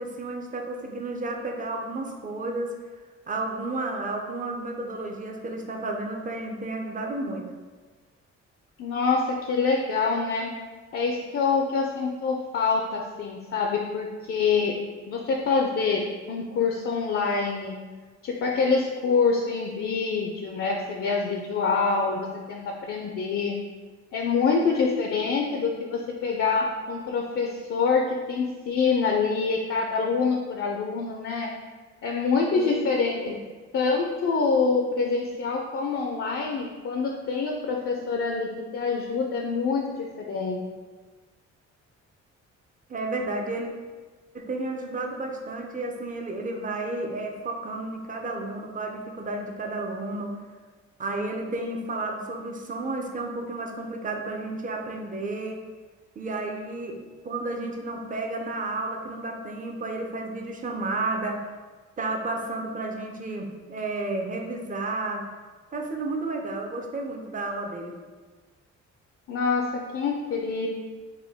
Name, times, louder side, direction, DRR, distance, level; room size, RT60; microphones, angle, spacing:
voice 1, 0.0-2.7 3.3-7.5 32.5-32.8 33.3-33.4 42.9-43.7 44.3-50.3 51.0-55.6 56.2-61.5 62.0-65.2 65.7-68.0, right 2 dB, 25° right, 2 dB, 0.5 m, -32 dB
voice 2, 8.8-10.5 10.9-14.8 15.1-17.7 18.2-23.6 24.1-31.5 32.0-33.4 33.7-40.6 69.3-70.7, left 4 dB, 45° left, 1 dB, 0.4 m, -26 dB
3.6 x 2.2 x 3.5 m, 1.4 s
cardioid pair, 90°, 30 cm